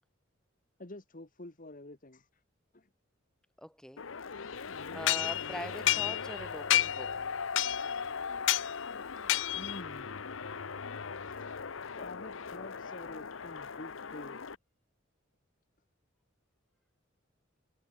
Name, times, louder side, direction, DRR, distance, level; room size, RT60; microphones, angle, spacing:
voice 1, 0.8-2.4 2.7-2.9 9.6-10.4 11.1-11.5 11.9-14.5, left 2 dB, 45° left, 1.7 m, -48 dB
voice 2, 3.6-4.0 4.9-7.1, equal, 5° left, 1.6 m, -42 dB
sound 1, 4.0-14.6, left 5 dB, 85° left, 0.9 m, -40 dB
sound 2, 5.1-6.4 6.7-7.1 7.6-8.0 8.5-8.7 9.3-9.8, left 14 dB, 65° left, 0.4 m, -29 dB
head